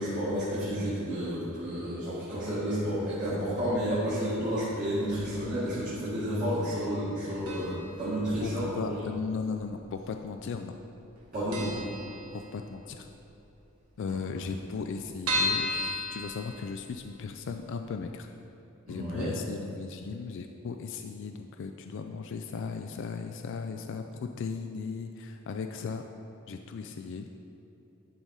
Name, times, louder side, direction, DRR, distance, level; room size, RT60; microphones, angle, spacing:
voice 1, 0.0-8.8 11.3-11.8 14.1-14.2 18.9-19.3, equal, 35° right, -11 dB, 1.8 m, -31 dB
sound 1, 7.5-8.0 8.2-8.3 9.3-10.0 10.3-10.4 10.7-10.8 11.2-11.3 11.5-12.8 13.2-13.3 13.6-13.7 13.9-14.0 14.5-17.1 17.5-17.6 18.0-18.1, left 1 dB, 90° right, 1.4 m, -33 dB
voice 2, 8.4-10.8 12.3-13.1 14.0-18.3 18.9-26.0 26.5-27.3, left 5 dB, 55° left, 5 dB, 0.3 m, -37 dB
11.0 x 4.1 x 4.7 m, 2.9 s
head